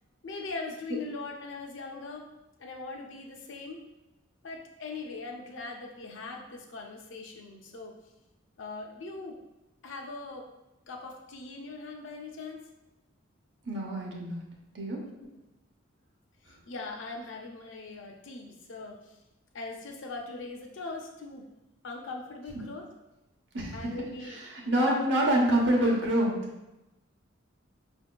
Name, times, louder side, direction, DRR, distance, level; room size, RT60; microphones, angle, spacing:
voice 1, 0.2-2.3 2.6-3.8 4.4-7.9 8.6-9.4 9.8-10.5 10.9-12.6 15.2-15.3 16.4-19.2 19.5-21.5 21.8-22.9 23.7-24.4 24.8-25.0, left 3 dB, 70° left, 1 dB, 0.6 m, -40 dB
voice 2, 13.7-14.4 14.7-15.0 23.5-23.9 24.5-26.4, right 1 dB, 65° right, -2 dB, 0.9 m, -26 dB
5.0 x 2.7 x 2.2 m, 0.98 s
head